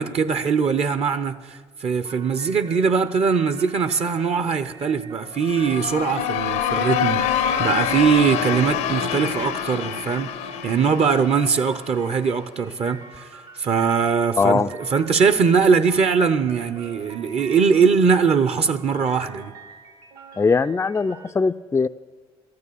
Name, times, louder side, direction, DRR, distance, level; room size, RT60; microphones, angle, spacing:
voice 1, 0.0-10.3 10.6-14.6 14.9-19.5, right 6 dB, 50° right, 12 dB, 0.8 m, -21 dB
sound 1, 2.0-21.3, right 5 dB, 80° right, 3.0 m, -45 dB
sound 2, 5.3-12.1, left 9 dB, 85° left, 0.9 m, -26 dB
voice 2, 14.4-14.7 20.4-21.9, left 4 dB, 20° left, 9 dB, 0.4 m, -20 dB
13.5 x 9.6 x 8.5 m, 1.5 s
hypercardioid pair, 60°, 13 cm